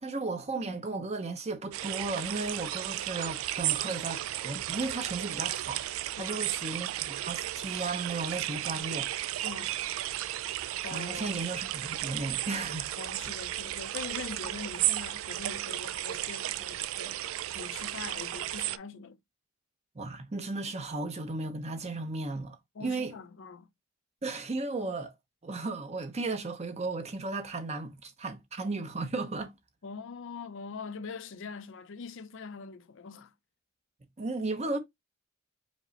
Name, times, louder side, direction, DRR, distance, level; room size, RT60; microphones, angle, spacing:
voice 1, 0.0-5.8 6.2-9.3 10.9-12.9 19.9-23.1 24.2-25.1 25.4-29.5 34.2-34.8, right 3 dB, 35° right, 0.8 m, -35 dB
sound 1, 1.7-18.8, right 14 dB, 75° right, 0.3 m, -34 dB
voice 2, 6.2-6.6 9.4-9.8 10.8-11.4 13.0-17.2 17.5-19.2 22.7-23.7 29.8-33.3, left 5 dB, 65° left, 0.5 m, -43 dB
5.0 x 2.1 x 3.9 m
head